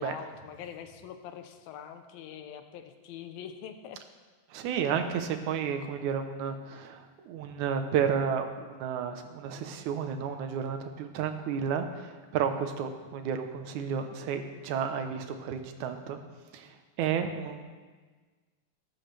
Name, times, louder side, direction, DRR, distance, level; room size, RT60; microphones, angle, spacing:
voice 1, 0.0-4.0, left 9 dB, 85° left, 8 dB, 2.6 m, -43 dB
voice 2, 4.5-16.2 16.5-17.6, right 7 dB, 70° right, 7 dB, 2.1 m, -32 dB
20.0 x 13.0 x 3.4 m, 1.4 s
omnidirectional pair, 4.1 m